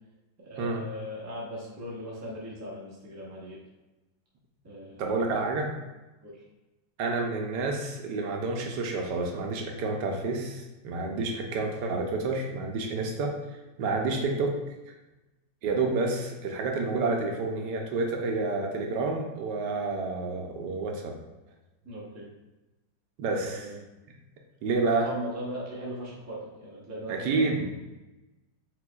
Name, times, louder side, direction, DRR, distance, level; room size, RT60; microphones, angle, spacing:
voice 1, 0.4-3.6 4.6-5.1 6.2-6.4 11.1-11.3 14.1-14.3 21.8-22.3 23.4-23.8 24.8-27.6, equal, 20° right, -5 dB, 0.4 m, -39 dB
voice 2, 5.0-5.7 7.0-13.3 13.8-14.5 15.6-21.1 23.2-23.7 24.6-25.1 27.1-27.6, right 3 dB, 70° right, 2 dB, 1.2 m, -29 dB
4.8 x 4.0 x 2.3 m, 1.1 s
omnidirectional pair, 2.1 m